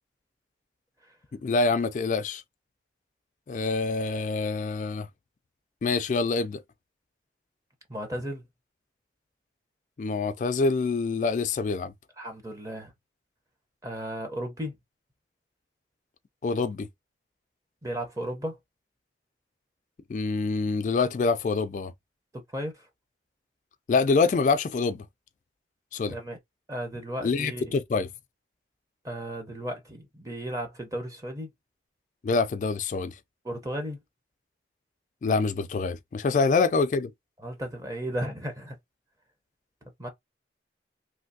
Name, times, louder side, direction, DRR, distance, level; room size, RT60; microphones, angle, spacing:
voice 1, 1.3-2.4 3.5-5.1 5.8-6.6 10.0-11.9 16.4-16.9 20.1-21.9 23.9-25.0 25.9-26.2 27.2-28.1 32.2-33.2 35.2-37.1, left 4 dB, 45° left, 0.3 m, -26 dB
voice 2, 7.9-8.4 12.2-12.9 13.8-14.7 17.8-18.6 22.5-22.9 26.1-26.4 26.7-27.7 29.0-31.5 33.4-34.0 36.3-36.4 37.4-38.7 40.0-40.1, equal, 20° right, 0.6 m, -34 dB
3.1 x 2.6 x 2.6 m
head